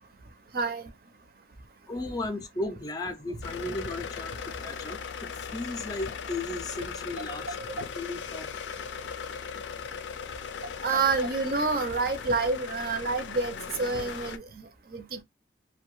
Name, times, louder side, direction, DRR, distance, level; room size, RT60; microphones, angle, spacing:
voice 1, 0.5-0.9 10.8-14.7 14.9-15.2, right 4 dB, 55° right, 0.6 m, -28 dB
voice 2, 1.9-7.6 8.0-8.5, left 2 dB, 20° left, 0.4 m, -35 dB
sound 1, 3.4-14.4, left 6 dB, 85° left, 0.4 m, -38 dB
2.6 x 2.2 x 3.0 m
head